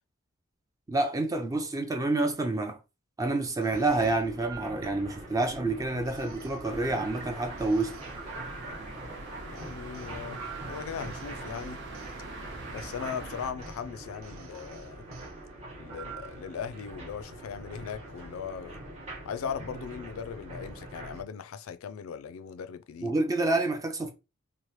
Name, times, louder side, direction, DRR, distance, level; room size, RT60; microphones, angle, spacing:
voice 1, 0.9-2.8 3.2-8.0 23.0-24.1, right 2 dB, 15° right, 0.4 m, -28 dB
sound 1, 3.6-5.4 6.0-9.2 9.5-12.2 12.8-13.0 13.6-13.8 14.2-15.3 15.9-16.5, right 6 dB, 70° right, 0.5 m, -48 dB
sound 2, 3.7-21.2, right 1 dB, 35° right, 1.1 m, -44 dB
sound 3, 6.6-13.5, right 3 dB, 55° right, 0.9 m, -44 dB
voice 2, 9.4-10.4 10.7-11.8 12.7-15.1 15.8-18.8 19.2-23.2, left 7 dB, 80° left, 0.3 m, -39 dB
3.0 x 2.0 x 3.0 m
head